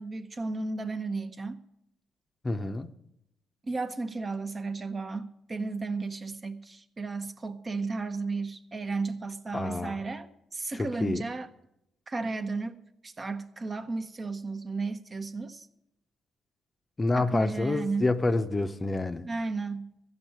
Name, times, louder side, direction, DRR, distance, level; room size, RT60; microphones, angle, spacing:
voice 1, 0.0-1.6 3.6-11.5 12.1-15.7 17.2-18.1 19.2-19.9, right 3 dB, 30° right, 0.9 m, -34 dB
voice 2, 2.4-2.9 9.5-10.0 11.0-11.2 17.0-19.3, left 2 dB, 25° left, 0.7 m, -28 dB
14.5 x 5.5 x 9.2 m
cardioid pair, 90°, 0 cm